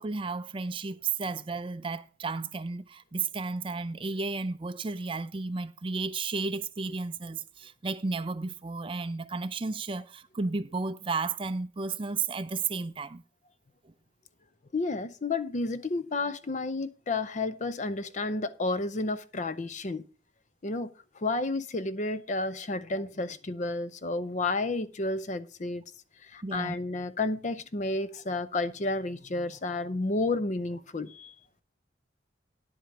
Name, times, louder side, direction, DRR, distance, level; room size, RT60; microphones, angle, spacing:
voice 1, 0.0-13.2 13.8-13.9 26.4-26.7, right 4 dB, 25° right, 0.4 m, -33 dB
voice 2, 14.7-20.0 20.6-20.9 21.2-25.8 26.2-31.3, left 2 dB, 40° left, 0.5 m, -31 dB
10.5 x 4.9 x 7.1 m
head